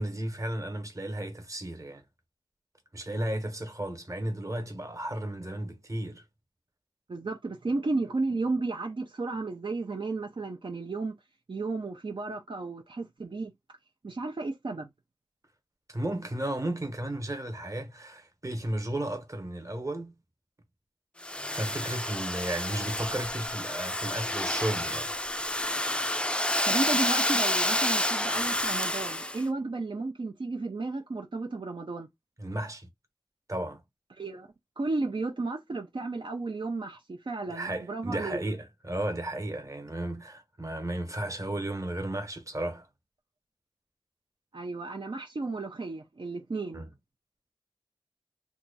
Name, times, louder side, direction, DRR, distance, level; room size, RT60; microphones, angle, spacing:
voice 1, 0.0-2.0 2.9-6.2 15.9-20.2 21.5-25.1 32.4-32.9 33.5-33.8 37.5-42.9 46.7-46.9, right 1 dB, 35° right, 1.1 m, -34 dB
voice 2, 7.1-11.1 11.5-13.5 14.0-14.9 26.6-32.1 34.2-34.5 34.8-38.4 44.5-46.8, right 3 dB, 65° right, 0.6 m, -33 dB
Domestic sounds home sounds, 21.2-29.4, left 1 dB, 10° left, 0.4 m, -29 dB
2.8 x 2.3 x 3.9 m
wide cardioid pair, 50°, 9 cm